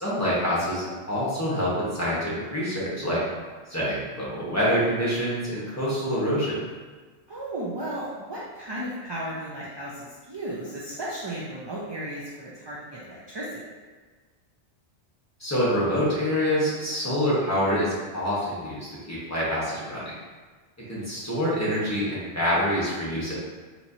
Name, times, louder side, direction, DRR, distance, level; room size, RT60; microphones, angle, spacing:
voice 1, 0.0-3.2 3.7-6.6 15.4-20.0 20.8-23.4, equal, 15° left, -9 dB, 1.1 m, -26 dB
voice 2, 7.3-13.4, right 1 dB, 35° right, -6 dB, 0.4 m, -35 dB
4.3 x 2.9 x 2.7 m, 1.4 s
omnidirectional pair, 1.1 m